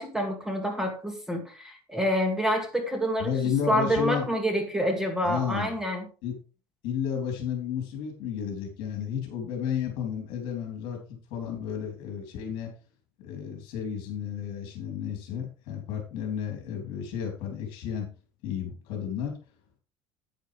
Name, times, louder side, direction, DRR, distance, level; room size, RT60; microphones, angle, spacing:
voice 1, 0.0-3.4 3.7-6.1, equal, 5° right, 3 dB, 2.1 m, -27 dB
voice 2, 3.2-4.2 5.2-5.7 6.2-6.3 6.8-12.7 13.2-18.1 18.4-19.4, left 8 dB, 70° left, 2 dB, 3.4 m, -32 dB
10.5 x 9.6 x 3.3 m, 0.35 s
cardioid pair, 155°, 9 cm